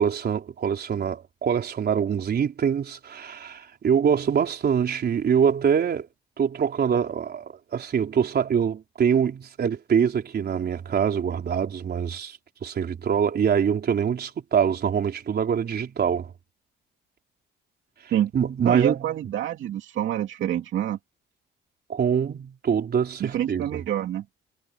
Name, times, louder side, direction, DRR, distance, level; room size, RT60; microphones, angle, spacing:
voice 1, 0.0-6.1 6.4-16.3 18.3-19.0 21.9-23.8, right 7 dB, 55° right, 4.1 m, -24 dB
voice 2, 18.6-21.0 23.2-24.3, right 11 dB, 75° right, 2.4 m, -27 dB
cardioid pair, 90°, 20 cm